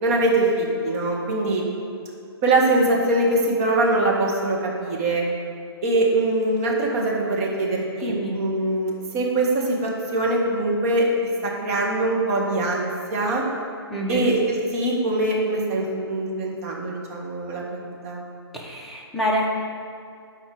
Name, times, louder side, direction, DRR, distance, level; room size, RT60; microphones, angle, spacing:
voice 1, 0.0-1.6 2.4-5.2 5.8-11.1 11.4-13.4 14.1-18.2, right 2 dB, 35° right, -2 dB, 1.7 m, -23 dB
voice 2, 8.0-8.4 13.9-14.2 18.5-19.5, equal, ahead, -5 dB, 1.1 m, -26 dB
12.0 x 4.7 x 4.9 m, 2.3 s
figure-of-eight pair, 135°, 14 cm